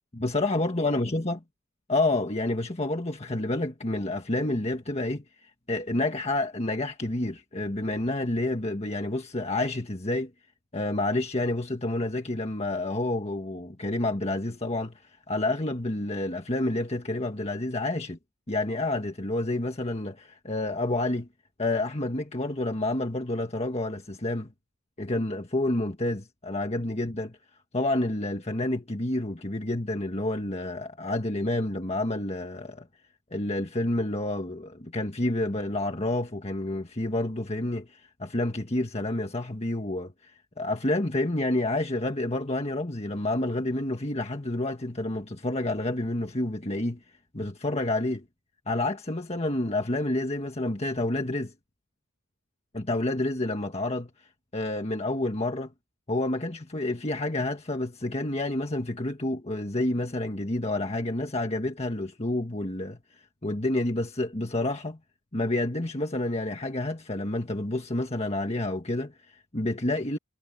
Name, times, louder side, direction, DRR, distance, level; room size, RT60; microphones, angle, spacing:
voice 1, 0.1-1.4 1.9-5.2 5.7-10.3 10.7-15.0 15.3-18.2 18.5-21.3 21.6-24.5 25.0-27.4 27.7-32.9 33.3-40.3 40.6-47.0 47.3-48.2 48.7-51.5 52.7-54.1 54.5-55.7 56.1-63.0 63.4-65.0 65.3-70.2, left 2 dB, 30° left, 1.6 m, -29 dB
head